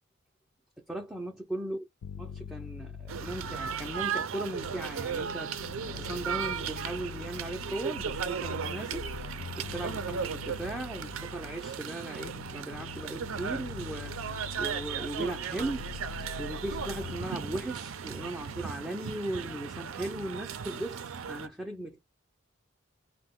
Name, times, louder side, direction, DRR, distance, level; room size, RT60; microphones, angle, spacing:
voice 1, 0.9-1.8 2.2-5.5 5.9-14.1 14.6-15.9 16.4-22.0, right 1 dB, 5° right, 0.4 m, -37 dB
sound 1, 2.0-4.2 4.6-11.8 12.3-17.3, left 6 dB, 80° left, 0.3 m, -43 dB
sound 2, 3.1-21.5, right 7 dB, 90° right, 0.4 m, -36 dB
2.6 x 2.1 x 3.5 m
head